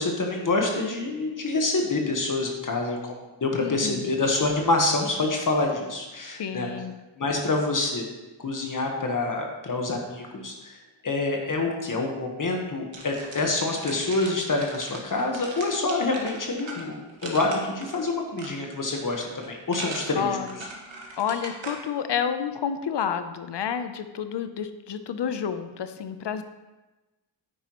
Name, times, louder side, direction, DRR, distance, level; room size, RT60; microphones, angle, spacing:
voice 1, 0.0-6.7 7.2-8.0 8.4-20.4, left 2 dB, 45° left, 1 dB, 1.3 m, -27 dB
voice 2, 3.6-4.1 6.4-6.9 20.2-20.6 21.2-26.4, left 7 dB, 60° left, 10 dB, 0.8 m, -30 dB
sound 1, 12.9-21.8, right 2 dB, 90° right, 1.9 m, -40 dB
9.5 x 9.4 x 3.1 m, 1.1 s
wide cardioid pair, 135°, 46 cm